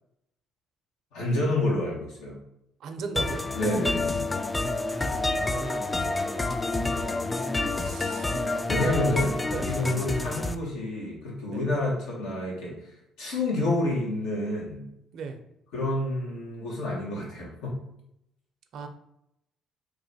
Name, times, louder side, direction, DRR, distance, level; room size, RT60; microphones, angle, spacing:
voice 1, 1.1-2.4 3.5-4.2 8.7-12.9 13.2-14.8 15.7-17.8, left 1 dB, 85° left, -4 dB, 1.4 m, -28 dB
voice 2, 2.8-3.5 5.5-6.3 7.8-8.5 9.5-9.9 11.5-11.6 15.1-15.4 18.7-18.9, right 5 dB, 65° right, 5 dB, 0.5 m, -38 dB
sound 1, 3.2-8.6, left 3 dB, 65° left, 0.9 m, -39 dB
sound 2, 3.2-10.5, left 2 dB, 20° left, 0.3 m, -28 dB
3.0 x 2.5 x 4.1 m, 0.81 s
supercardioid pair, 80°, 0 cm